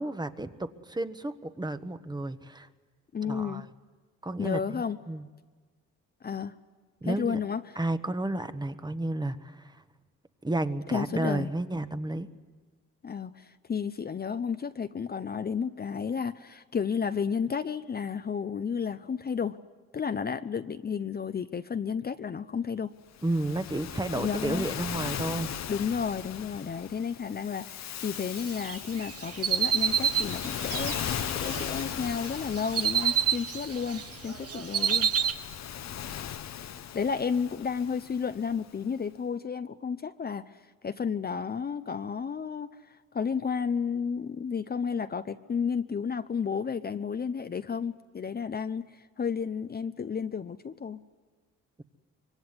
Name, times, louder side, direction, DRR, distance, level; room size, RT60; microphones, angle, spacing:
voice 1, 0.0-2.7 3.2-3.7 4.2-5.3 7.0-7.4 7.8-9.8 10.4-12.3 23.2-25.5, right 2 dB, 15° right, 10 dB, 1.2 m, -32 dB
voice 2, 3.1-3.7 4.4-5.0 6.2-6.5 7.0-7.8 10.9-11.5 13.0-19.6 19.9-22.9 24.1-24.7 25.7-31.0 31.3-35.1 36.9-40.5 40.8-42.8 43.1-51.0, left 6 dB, 30° left, 10 dB, 0.7 m, -32 dB
Waves surf, 23.2-38.7, left 10 dB, 60° left, 1.0 m, -38 dB
sound 1, 28.6-31.8 32.3-34.0 34.3-35.3, right 8 dB, 50° right, 1.5 m, -28 dB
25.0 x 23.0 x 9.7 m, 1.4 s
cardioid pair, 90°, 30 cm